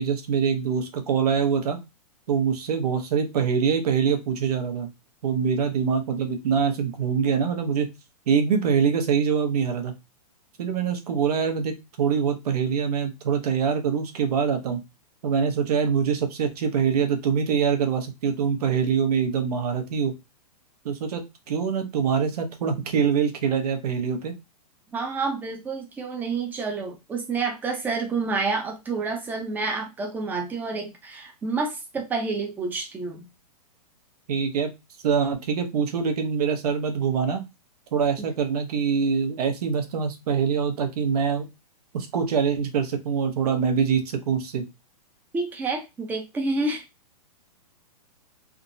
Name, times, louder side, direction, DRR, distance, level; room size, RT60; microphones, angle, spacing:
voice 1, 0.0-1.8 2.3-4.9 5.2-7.9 8.3-9.9 10.6-14.8 15.2-20.1 20.8-24.3 34.3-34.7 35.0-37.4 37.9-41.5 41.9-44.6, right 6 dB, 70° right, 6 dB, 0.9 m, -24 dB
voice 2, 24.9-33.3 45.3-46.8, right 4 dB, 10° right, 3 dB, 0.5 m, -29 dB
3.4 x 2.0 x 2.6 m, 0.23 s
hypercardioid pair, 150°, 21 cm